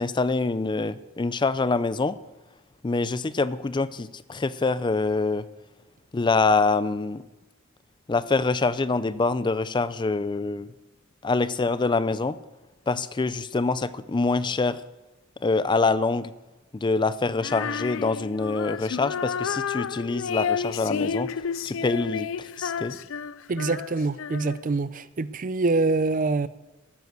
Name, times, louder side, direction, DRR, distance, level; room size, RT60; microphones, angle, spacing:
voice 1, 0.0-2.2 2.8-5.5 6.1-7.2 8.1-10.7 11.2-12.4 12.9-14.8 15.4-16.3 16.7-21.3 21.6-23.0, left 3 dB, 25° left, 0.4 m, -25 dB
Female singing, 17.4-24.8, left 6 dB, 80° left, 0.4 m, -31 dB
voice 2, 23.5-26.5, right 3 dB, 45° right, 0.5 m, -25 dB
13.5 x 9.4 x 6.7 m
head